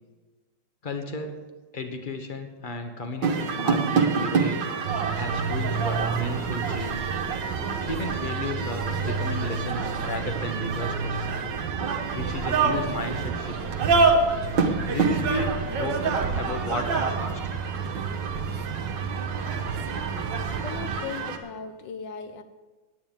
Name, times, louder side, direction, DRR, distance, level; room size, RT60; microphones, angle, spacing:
voice 1, 0.8-1.4 1.7-4.8 5.2-7.1 7.8-11.3 12.1-13.8 14.9-17.5, left 2 dB, 30° left, 6 dB, 1.0 m, -34 dB
sound 1, 3.2-21.4, right 4 dB, 65° right, 1.8 m, -27 dB
sound 2, 4.9-21.0, right 5 dB, 90° right, 1.4 m, -32 dB
voice 2, 20.6-22.4, left 6 dB, 65° left, 9 dB, 1.6 m, -37 dB
10.0 x 8.9 x 8.9 m, 1.3 s
omnidirectional pair, 2.2 m